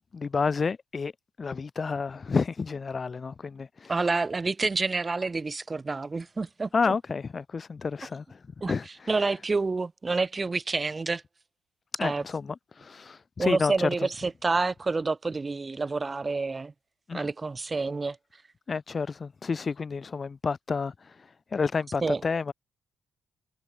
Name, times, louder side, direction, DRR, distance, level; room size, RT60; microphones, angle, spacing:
voice 1, 0.1-1.1 1.4-3.9 6.7-9.1 12.0-13.9 17.1-17.3 18.7-22.5, left 5 dB, 35° left, 0.6 m, -30 dB
voice 2, 3.9-6.9 8.6-8.7 9.1-11.2 12.0-12.2 13.4-16.7 17.1-18.4 22.0-22.2, right 3 dB, 25° right, 0.3 m, -28 dB
cardioid pair, 90°, 0 cm